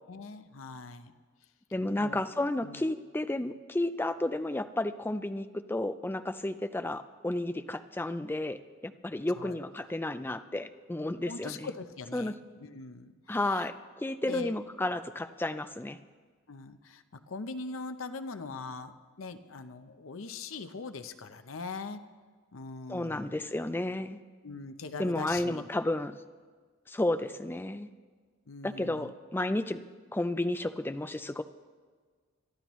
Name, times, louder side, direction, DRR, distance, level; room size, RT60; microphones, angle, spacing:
voice 1, 0.1-1.1 2.0-2.2 2.6-2.8 9.4-9.6 11.3-12.3 12.6-13.7 14.2-14.6 16.5-22.0 22.5-23.4 24.4-25.7 28.5-29.1, left 4 dB, 70° left, 9 dB, 0.7 m, -41 dB
voice 2, 1.7-11.7 12.1-12.3 13.3-16.0 22.9-24.2 25.0-26.2 26.9-27.9 28.6-29.8 30.1-31.4, left 1 dB, 10° left, 10 dB, 0.4 m, -32 dB
22.0 x 12.5 x 3.1 m, 1.5 s
head